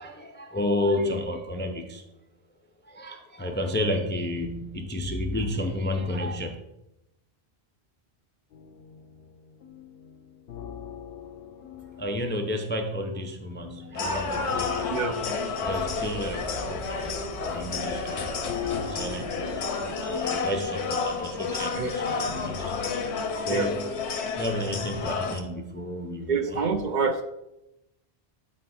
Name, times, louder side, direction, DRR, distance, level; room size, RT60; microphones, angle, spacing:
voice 1, 0.0-2.0 2.9-6.5 12.0-15.0 15.6-19.5 19.8-22.8 23.5-23.7 24.1-26.6, left 1 dB, 15° left, 4 dB, 0.4 m, -31 dB
sound 1, 8.5-13.2 13.6-25.2, left 9 dB, 65° left, 0.8 m, -41 dB
sound 2, 13.9-25.4, left 4 dB, 85° left, 1.1 m, -31 dB
sound 3, 15.7-25.1, right 2 dB, 30° right, 1.3 m, -46 dB
voice 2, 26.3-27.2, right 5 dB, 50° right, 6 dB, 0.7 m, -26 dB
8.6 x 4.3 x 4.1 m, 0.90 s
omnidirectional pair, 1.1 m